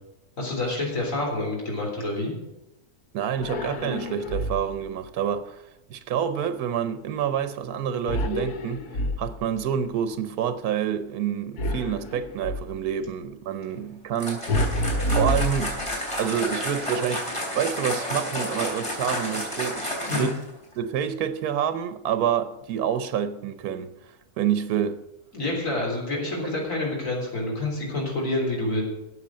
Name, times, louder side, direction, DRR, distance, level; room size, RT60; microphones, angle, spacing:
voice 1, 0.4-2.3 20.1-20.3 25.3-28.8, left 2 dB, 60° left, 4.1 m, -28 dB
voice 2, 3.1-14.4 15.1-15.8 16.2-17.2 17.5-20.4 20.8-23.9 24.4-25.0, right 9 dB, 85° right, 1.3 m, -28 dB
sound 1, 3.4-4.9 8.1-9.6 11.6-12.8 14.5-16.2, left 1 dB, 90° left, 1.5 m, -28 dB
sound 2, 14.1-20.5, equal, 20° left, 4.1 m, -31 dB
13.0 x 8.1 x 7.5 m
omnidirectional pair, 1.6 m